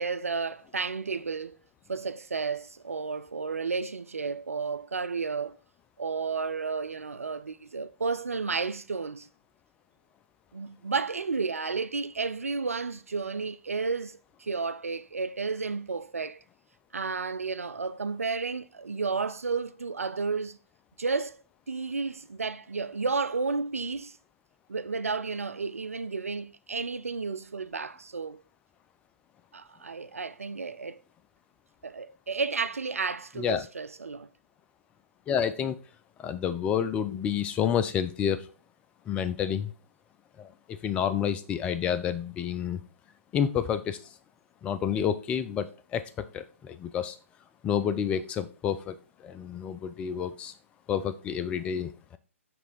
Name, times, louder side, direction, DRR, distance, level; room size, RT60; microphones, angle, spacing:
voice 1, 0.0-1.6 1.9-5.6 6.0-9.3 10.5-16.4 16.9-20.6 21.0-21.4 21.7-24.2 24.7-28.4 29.5-31.0 31.8-34.3, right 4 dB, 80° right, 0.4 m, -32 dB
voice 2, 35.3-35.8 36.2-38.5 39.1-39.7 40.4-42.8 43.3-44.0 44.6-47.2 47.6-49.0 49.2-50.5 50.9-52.2, left 8 dB, 15° left, 0.4 m, -29 dB
5.9 x 3.3 x 5.0 m
figure-of-eight pair, 130°, 8 cm